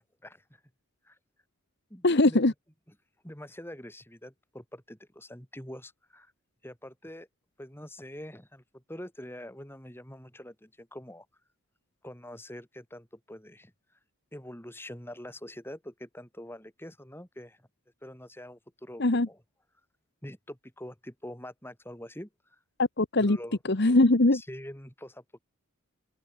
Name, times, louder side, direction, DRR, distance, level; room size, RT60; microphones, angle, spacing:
voice 1, 0.2-0.6 1.0-1.2 1.9-2.5 3.2-6.3 6.6-7.3 7.6-11.3 12.0-13.7 14.3-17.7 18.0-19.4 20.2-22.6 23.2-23.6 24.3-25.4, left 1 dB, 10° left, 6.0 m, -45 dB
voice 2, 2.0-2.5 19.0-19.3 22.8-23.4 23.7-24.4, left 2 dB, 50° left, 1.2 m, -21 dB
open air
head